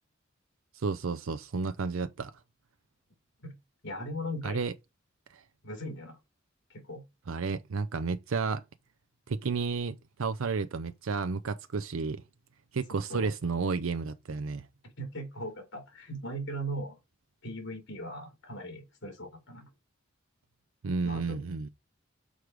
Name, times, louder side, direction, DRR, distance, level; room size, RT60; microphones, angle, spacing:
voice 1, 0.7-2.3 4.4-4.7 5.3-5.4 7.3-8.6 9.3-12.2 12.7-14.7 20.8-21.7, right 4 dB, 85° right, 0.5 m, -32 dB
voice 2, 3.8-4.6 5.6-6.2 6.7-7.0 12.9-13.3 15.0-16.9 17.4-19.7 21.0-21.4, equal, 65° left, 3.4 m, -39 dB
6.3 x 4.7 x 5.0 m
head